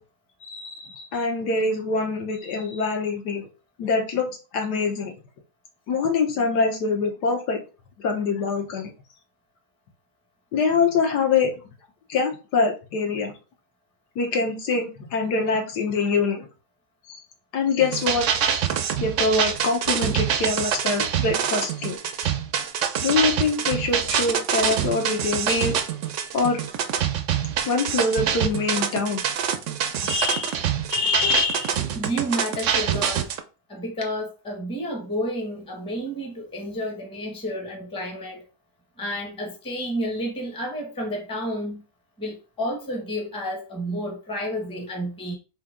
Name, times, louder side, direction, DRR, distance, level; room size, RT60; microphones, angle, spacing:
voice 1, 0.4-3.5 3.8-5.1 5.9-7.6 8.0-8.9 10.5-11.5 12.1-13.3 14.2-16.4 17.1-17.2 17.5-18.3 19.0-22.3 23.0-25.8 26.3-26.6 27.6-29.2 30.0-30.6 30.9-31.8, left 4 dB, 80° left, 1.6 m, -24 dB
sound 1, 17.8-33.4, right 8 dB, 70° right, 0.7 m, -25 dB
voice 2, 31.9-33.3 33.7-38.4 39.0-41.8 42.2-45.3, equal, 5° left, 0.7 m, -30 dB
4.9 x 2.9 x 3.6 m
omnidirectional pair, 1.8 m